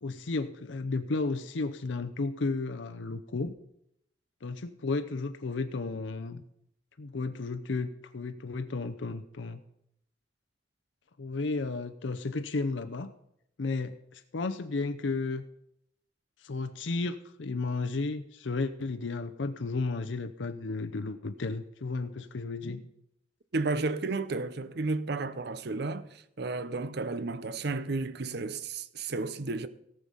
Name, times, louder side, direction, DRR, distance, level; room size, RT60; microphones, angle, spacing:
voice 1, 0.0-3.5 4.4-6.4 7.0-9.6 11.2-13.1 13.6-15.5 16.4-22.8, left 3 dB, 80° left, 0.7 m, -33 dB
voice 2, 23.5-29.7, right 3 dB, 60° right, 0.7 m, -32 dB
17.5 x 6.6 x 5.5 m
head